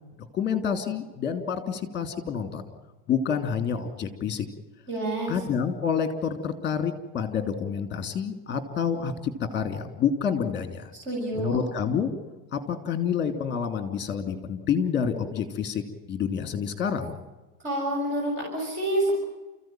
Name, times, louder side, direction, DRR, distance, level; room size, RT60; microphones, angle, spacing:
voice 1, 0.3-2.6 3.1-4.5 5.3-10.9 11.3-12.1 12.5-17.2, left 7 dB, 25° left, 8 dB, 3.0 m, -28 dB
voice 2, 4.9-5.3 11.0-11.6 17.6-19.1, right 1 dB, 25° right, -2 dB, 6.8 m, -28 dB
29.5 x 15.5 x 9.2 m, 1.1 s
supercardioid pair, 150°, 42 cm